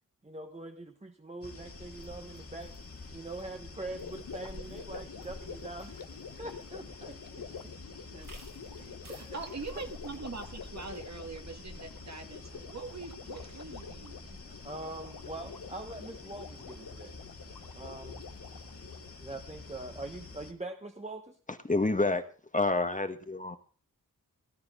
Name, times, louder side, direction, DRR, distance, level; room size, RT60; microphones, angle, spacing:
voice 1, 0.2-2.7 3.1-6.1 6.4-7.4 9.1-9.4 14.6-17.2 17.7-18.2 19.2-21.4, right 2 dB, 20° right, 4 dB, 1.3 m, -43 dB
sound 1, 1.4-20.5, left 3 dB, 40° left, 2.1 m, -47 dB
sound 2, 1.9-11.0, right 3 dB, 65° right, 3.7 m, -61 dB
Gurgling, 3.9-19.2, left 6 dB, 75° left, 1.3 m, -48 dB
voice 2, 8.0-14.7, right 4 dB, 50° right, 5 dB, 2.1 m, -44 dB
voice 3, 21.7-22.2 22.5-23.6, left 2 dB, 20° left, 8 dB, 1.4 m, -28 dB
18.0 x 11.5 x 3.8 m, 0.40 s
wide cardioid pair, 90°, 34 cm